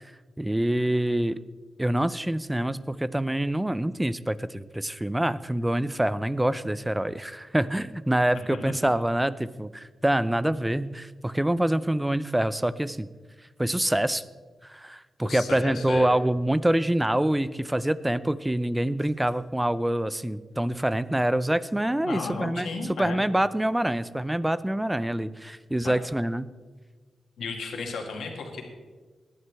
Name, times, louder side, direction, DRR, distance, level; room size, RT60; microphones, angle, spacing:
voice 1, 0.4-1.4 1.8-13.1 13.6-14.2 14.6-22.7 23.0-26.5, right 1 dB, 10° right, 16 dB, 0.5 m, -26 dB
voice 2, 15.2-16.1 22.0-23.2 25.8-26.0 27.4-28.6, left 4 dB, 85° left, 1 dB, 2.3 m, -34 dB
18.5 x 11.0 x 3.5 m, 1.4 s
cardioid pair, 85°, 0 cm